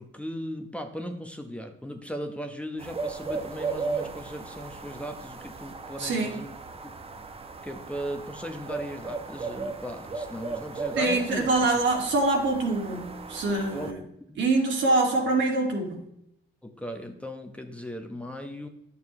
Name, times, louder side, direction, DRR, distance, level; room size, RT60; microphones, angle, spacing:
voice 1, 0.0-6.5 6.8-6.9 7.6-11.5 13.7-14.4 16.6-18.7, equal, 5° left, 5 dB, 1.0 m, -38 dB
sound 1, 2.8-13.9, right 4 dB, 30° right, 0.9 m, -36 dB
voice 2, 6.0-6.4 11.0-14.0 14.4-16.0, right 2 dB, 70° right, 1 dB, 2.3 m, -25 dB
10.5 x 6.9 x 3.2 m, 0.78 s
cardioid pair, 90°, 20 cm